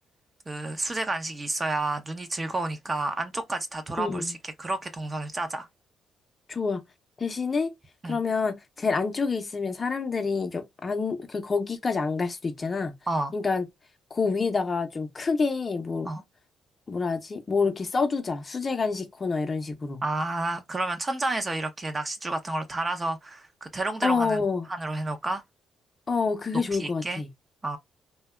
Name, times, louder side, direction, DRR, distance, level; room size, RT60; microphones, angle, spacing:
voice 1, 0.5-5.7 8.0-8.2 13.1-13.3 16.0-16.2 20.0-24.4 24.7-25.4 26.7-27.2 27.6-27.8, right 2 dB, 25° right, 0.6 m, -30 dB
voice 2, 4.0-4.3 6.5-6.8 7.2-7.7 8.0-12.9 13.3-13.6 14.1-16.1 16.9-20.0 24.0-24.7 26.1-27.3, left 4 dB, 30° left, 0.6 m, -27 dB
2.7 x 2.2 x 2.2 m
cardioid pair, 90°, 0 cm